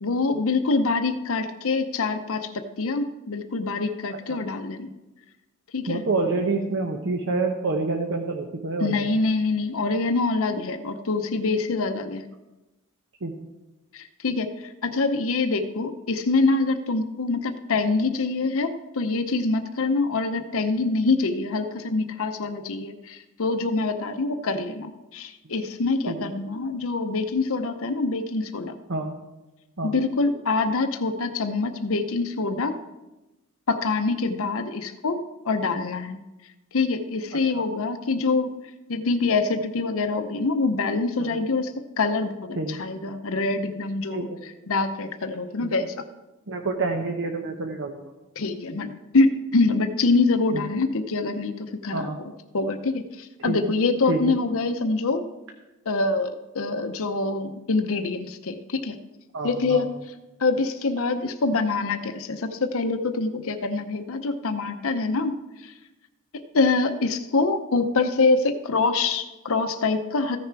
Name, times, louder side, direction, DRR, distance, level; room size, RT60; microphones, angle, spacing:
voice 1, 0.0-2.5 2.8-4.9 5.7-6.0 8.8-12.2 13.9-28.8 29.8-32.8 33.7-36.2 36.7-38.5 38.9-46.0 48.4-55.2 55.9-56.3 56.5-59.0 59.4-60.1 60.4-65.7 66.5-70.4, left 3 dB, 65° left, 7 dB, 0.7 m, -25 dB
voice 2, 5.9-9.1 13.2-13.4 26.1-26.3 28.9-29.1 29.8-29.9 37.3-37.6 41.2-41.4 42.6-42.8 44.1-44.4 45.6-45.7 46.5-48.0 50.5-50.7 51.9-52.2 53.4-53.7 54.1-54.2 59.3-59.9, right 3 dB, 60° right, 3 dB, 0.9 m, -28 dB
15.0 x 6.7 x 4.6 m, 1.0 s
head